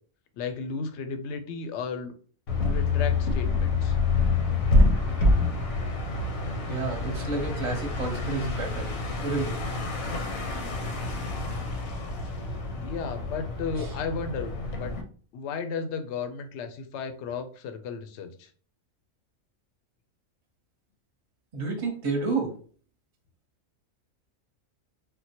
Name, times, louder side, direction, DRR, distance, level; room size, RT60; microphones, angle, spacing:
voice 1, 0.3-2.1 2.6-4.0 12.8-14.9 15.3-18.5, left 5 dB, 65° left, 7 dB, 0.8 m, -34 dB
sound 1, 2.5-15.0, left 3 dB, 90° left, 1.1 m, -27 dB
voice 2, 6.7-8.9 9.2-9.6 13.8-13.9 21.5-22.6, right 3 dB, 30° right, 3 dB, 0.7 m, -30 dB
3.7 x 2.1 x 2.8 m, 0.43 s
omnidirectional pair, 1.4 m